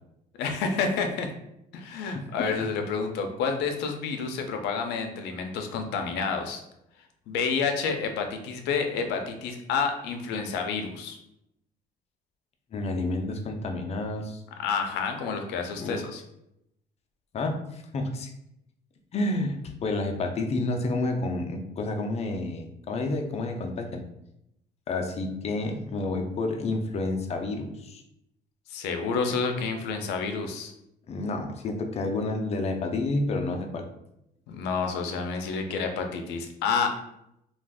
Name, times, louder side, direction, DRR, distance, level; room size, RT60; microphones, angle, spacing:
voice 1, 0.4-1.3 1.7-6.6 7.3-11.2 14.6-16.2 28.7-30.7 34.5-37.0, left 5 dB, 90° left, 5 dB, 0.5 m, -29 dB
voice 2, 12.7-14.4 15.8-16.0 17.3-18.3 19.1-24.0 24.9-28.0 31.1-33.8, left 2 dB, 40° left, 4 dB, 0.5 m, -30 dB
2.5 x 2.3 x 3.4 m, 0.81 s
cardioid pair, 110°, 17 cm